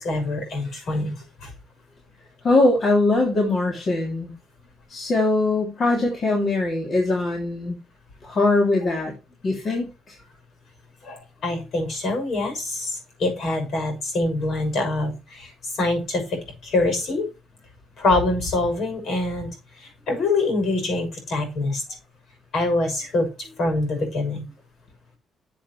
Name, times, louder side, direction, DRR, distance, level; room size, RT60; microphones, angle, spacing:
voice 1, 0.0-1.1 1.4-1.5 11.0-15.5 15.8-17.3 18.0-19.5 20.1-21.8 22.5-24.4, left 2 dB, 65° left, 5 dB, 6.7 m, -25 dB
voice 2, 2.4-4.3 4.9-7.8 8.2-9.1 9.4-10.2, left 2 dB, 45° left, 0 dB, 3.2 m, -21 dB
12.0 x 7.6 x 3.3 m, 0.28 s
cardioid pair, 90°, 0 cm